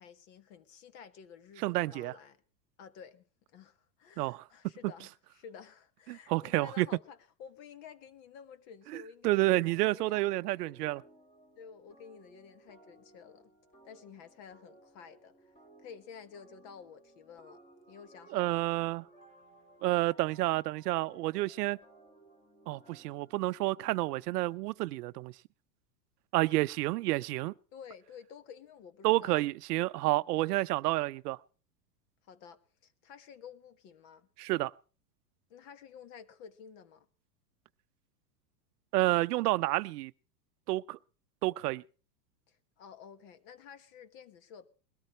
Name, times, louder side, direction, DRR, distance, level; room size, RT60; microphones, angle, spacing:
voice 1, 0.0-2.4 2.8-11.0 11.5-13.5 13.8-17.6 17.9-18.7 27.7-29.4 30.3-30.5 32.2-34.3 35.5-37.1 42.5-44.7, left 7 dB, 50° left, 1.4 m, -52 dB
voice 2, 1.6-2.1 4.2-4.4 6.1-6.9 8.9-11.0 18.3-19.0 19.8-21.8 22.7-25.3 26.3-27.5 29.0-31.4 34.4-34.7 38.9-40.1 40.7-41.0 41.4-41.8, right 19 dB, 70° right, 0.6 m, -29 dB
sound 1, 10.1-24.7, right 1 dB, 15° left, 2.1 m, -60 dB
21.5 x 13.0 x 3.1 m
supercardioid pair, 135°, 49 cm